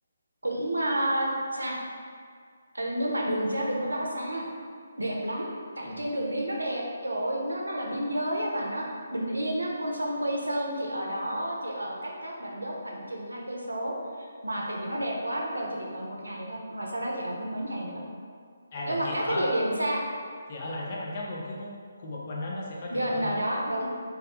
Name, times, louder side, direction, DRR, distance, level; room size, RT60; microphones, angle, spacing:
voice 1, 0.4-1.8 2.7-4.4 5.0-5.5 5.8-18.0 18.8-20.0 22.9-23.9, right 1 dB, 85° right, -2 dB, 0.5 m, -30 dB
voice 2, 18.7-19.5 20.5-21.7 22.0-23.3, left 2 dB, 40° left, -3 dB, 0.4 m, -35 dB
2.3 x 2.1 x 2.8 m, 2.1 s
figure-of-eight pair, 145°, 0 cm